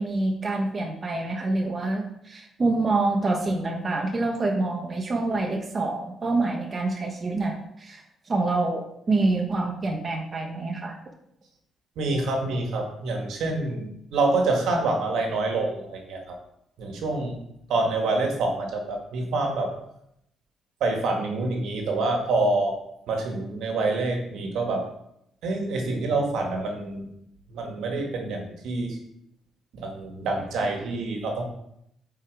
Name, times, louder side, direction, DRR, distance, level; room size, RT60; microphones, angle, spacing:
voice 1, 0.0-11.0, right 2 dB, 35° right, 2 dB, 1.2 m, -26 dB
voice 2, 12.0-16.4 16.8-17.4 17.7-19.8 20.8-22.8 23.1-24.9 25.4-27.1 27.5-29.0 29.7-31.4, right 2 dB, 80° right, 2 dB, 1.9 m, -26 dB
8.5 x 5.0 x 4.8 m, 0.76 s
cardioid pair, 90°, 0 cm